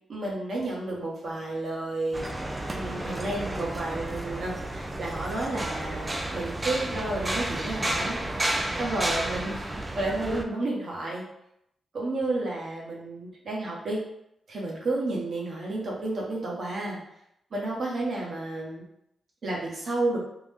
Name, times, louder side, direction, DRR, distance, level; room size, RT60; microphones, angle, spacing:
voice 1, 0.1-2.3 2.7-8.4 8.8-9.7 9.9-11.2 11.9-14.0 14.5-17.0 17.5-18.8 19.4-20.2, right 2 dB, 60° right, -4 dB, 1.2 m, -31 dB
sound 1, 2.1-10.4, right 1 dB, 20° right, 0.4 m, -32 dB
3.6 x 2.3 x 3.5 m, 0.78 s
cardioid pair, 105°, 0 cm